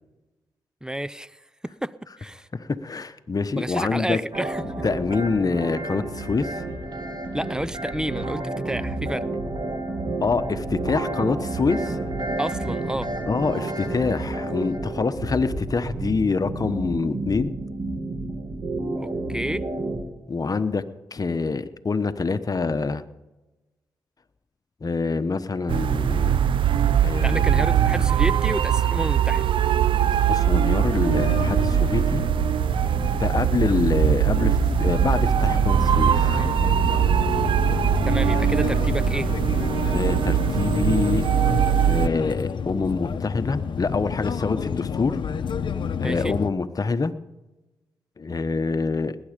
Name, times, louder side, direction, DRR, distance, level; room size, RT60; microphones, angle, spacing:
voice 1, 0.8-1.3 1.6-2.5 3.6-4.8 7.3-9.3 12.4-13.1 19.0-19.7 27.2-29.5 38.0-39.3 46.0-46.3, right 1 dB, 10° right, 18 dB, 0.6 m, -30 dB
voice 2, 2.5-4.2 4.8-6.6 10.2-12.0 13.3-17.5 20.3-20.8 21.1-23.0 24.8-26.4 27.0-27.4 30.2-32.2 33.1-36.3 39.9-41.3 41.8-45.2 46.0-47.1 48.2-49.2, left 4 dB, 45° left, 11 dB, 1.0 m, -25 dB
sound 1, 4.3-20.0, right 2 dB, 50° right, 2.3 m, -30 dB
sound 2, 25.7-42.1, right 9 dB, 70° right, 0.5 m, -21 dB
sound 3, 31.1-46.5, left 6 dB, 65° left, 0.8 m, -29 dB
19.0 x 10.0 x 5.2 m, 1.1 s
supercardioid pair, 40°, 9 cm